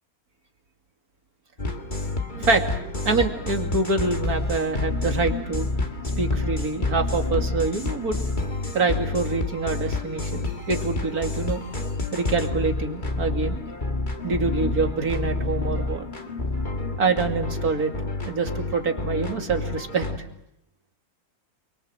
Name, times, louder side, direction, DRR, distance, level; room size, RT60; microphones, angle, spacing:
sound 1, 1.6-20.2, left 2 dB, 30° left, 1.9 m, -29 dB
voice 1, 3.0-5.7 6.2-8.2 8.7-11.6 12.1-13.6 14.2-16.0 17.0-17.9 18.2-20.3, right 4 dB, 85° right, 4 dB, 2.9 m, -25 dB
28.5 x 23.0 x 7.7 m, 0.81 s
omnidirectional pair, 1.6 m